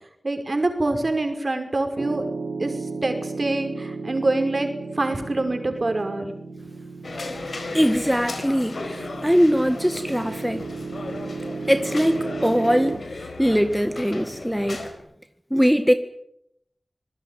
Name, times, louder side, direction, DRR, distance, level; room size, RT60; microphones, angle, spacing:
voice 1, 0.2-2.3 2.6-2.7 3.0-4.7 5.0-6.3, right 2 dB, 50° right, 5.6 m, -25 dB
Piano, 2.0-13.0, right 4 dB, 85° right, 4.3 m, -34 dB
sound 1, 7.0-14.9, left 2 dB, 85° left, 4.5 m, -36 dB
voice 2, 7.7-10.6 11.7-14.9 15.5-15.9, equal, ahead, 1.9 m, -21 dB
25.0 x 19.0 x 9.4 m
wide cardioid pair, 55°, 0 cm